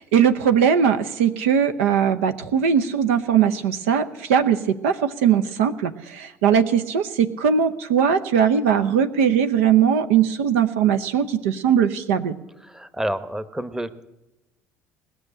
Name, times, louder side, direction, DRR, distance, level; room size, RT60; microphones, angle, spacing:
voice 1, 0.0-12.4, right 8 dB, 75° right, 9 dB, 0.8 m, -20 dB
voice 2, 12.6-14.1, right 1 dB, 10° right, 13 dB, 1.0 m, -29 dB
18.5 x 6.5 x 10.0 m, 1.0 s
hypercardioid pair, 60°, 7 cm